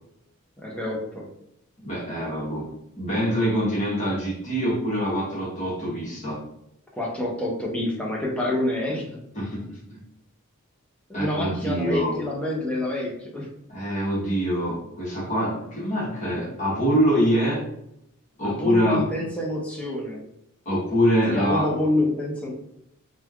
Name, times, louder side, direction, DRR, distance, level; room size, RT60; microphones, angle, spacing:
voice 1, 0.6-1.3 7.0-9.2 11.1-13.5 18.4-20.2 21.3-22.5, left 1 dB, 5° left, -2 dB, 0.5 m, -27 dB
voice 2, 1.8-6.5 9.3-10.0 11.1-12.2 13.7-17.7 18.4-19.1 20.6-21.7, equal, 35° left, -5 dB, 1.0 m, -25 dB
3.1 x 2.2 x 2.3 m, 0.79 s
head